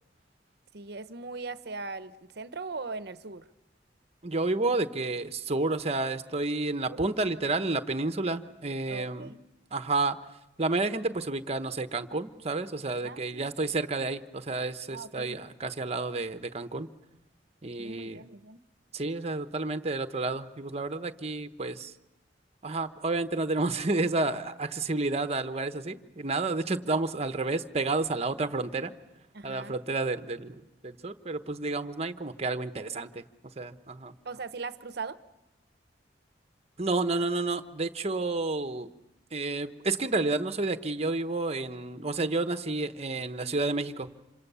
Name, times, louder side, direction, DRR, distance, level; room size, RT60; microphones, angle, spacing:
voice 1, 0.7-3.5 6.9-7.0 8.9-9.4 13.0-13.5 14.9-15.4 17.8-18.6 29.3-29.7 34.2-35.2, right 4 dB, 60° right, 12 dB, 0.9 m, -39 dB
voice 2, 4.2-9.3 9.7-10.2 10.6-16.9 17.6-18.2 18.9-21.9 22.6-28.9 29.4-33.2 33.6-34.2 36.8-38.9 39.3-44.1, right 3 dB, 35° right, 9 dB, 1.0 m, -30 dB
27.0 x 26.0 x 6.9 m, 0.98 s
head